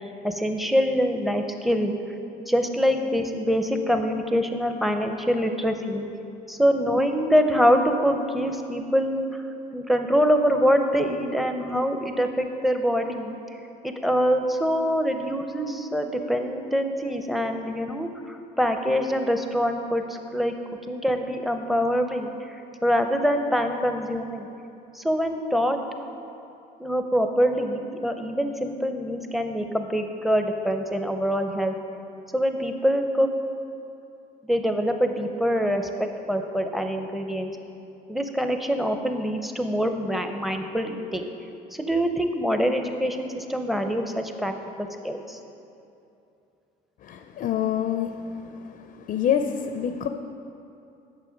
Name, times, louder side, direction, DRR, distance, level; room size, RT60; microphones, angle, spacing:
voice 1, 0.2-1.9 2.5-6.1 6.5-9.4 9.7-13.4 13.8-20.5 20.9-22.3 22.8-24.5 24.9-25.8 26.8-31.8 32.3-33.3 34.4-37.5 38.1-41.3 41.7-44.5 44.8-45.4, equal, ahead, 5 dB, 0.6 m, -24 dB
voice 2, 47.0-48.2 49.1-50.1, left 9 dB, 55° left, 7 dB, 0.5 m, -26 dB
9.0 x 6.6 x 5.1 m, 2.7 s
cardioid pair, 110°, 17 cm